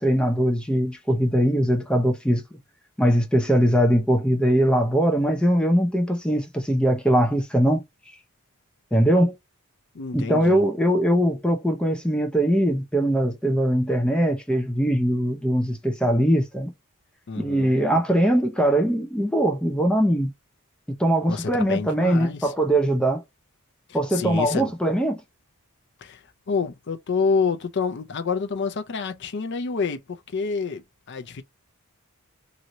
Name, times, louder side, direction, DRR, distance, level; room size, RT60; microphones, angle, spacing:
voice 1, 0.0-2.6 3.0-7.8 8.9-9.3 10.1-16.7 17.4-20.3 20.9-23.2 23.9-25.2, equal, 5° left, 0.6 m, -21 dB
voice 2, 9.9-10.6 17.3-17.7 21.3-22.5 23.9-24.7 26.0-30.8 31.1-31.4, left 5 dB, 50° left, 0.5 m, -28 dB
3.0 x 2.7 x 2.6 m
head